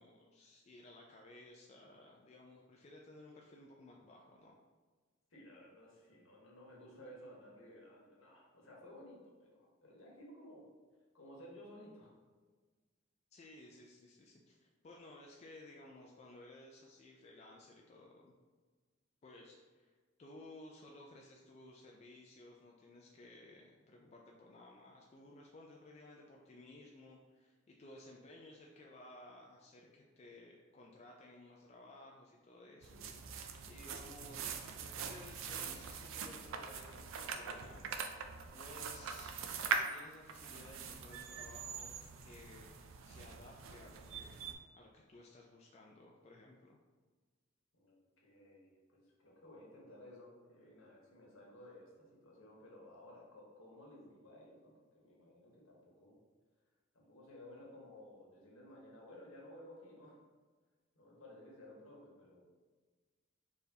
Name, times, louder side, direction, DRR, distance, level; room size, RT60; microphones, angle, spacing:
voice 1, 0.0-4.6 13.3-18.3 19.2-19.9 20.2-34.5 34.8-38.0 38.5-39.3 39.9-41.9 42.2-46.8, left 2 dB, 30° left, -1 dB, 0.3 m, -57 dB
voice 2, 5.3-10.7 11.1-12.1 47.7-56.2 56.9-60.2 60.9-62.4, left 1 dB, 75° left, -3 dB, 1.1 m, -56 dB
sound 1, 32.8-44.5, right 5 dB, 70° right, 0.4 m, -43 dB
4.3 x 3.3 x 2.7 m, 1.4 s
head